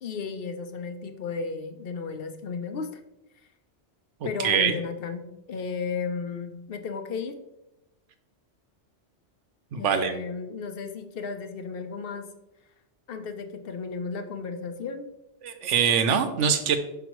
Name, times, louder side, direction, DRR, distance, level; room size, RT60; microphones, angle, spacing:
voice 1, 0.0-2.9 4.2-7.4 9.8-12.3 13.1-15.1, left 5 dB, 60° left, 8 dB, 0.8 m, -34 dB
voice 2, 4.4-4.7 9.7-10.1 15.4-16.8, right 7 dB, 85° right, 8 dB, 1.0 m, -23 dB
5.9 x 5.3 x 3.0 m, 0.90 s
omnidirectional pair, 1.2 m